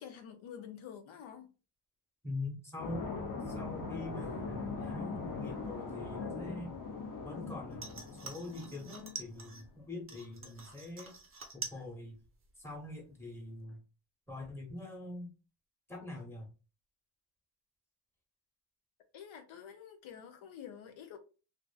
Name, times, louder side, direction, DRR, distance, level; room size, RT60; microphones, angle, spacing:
voice 1, 0.0-1.5 19.1-21.2, left 8 dB, 90° left, 0.6 m, -48 dB
voice 2, 2.2-3.1 3.5-6.8 7.2-11.1 11.5-12.2 12.6-13.8 14.3-15.3 15.9-16.5, left 2 dB, 5° left, 1.0 m, -44 dB
sound 1, 2.8-9.2, left 4 dB, 45° left, 0.7 m, -41 dB
sound 2, 7.7-9.7 10.1-11.9 12.2-12.7 13.1-13.2, right 4 dB, 30° right, 0.5 m, -46 dB
2.6 x 2.4 x 2.3 m
cardioid pair, 100°, 46 cm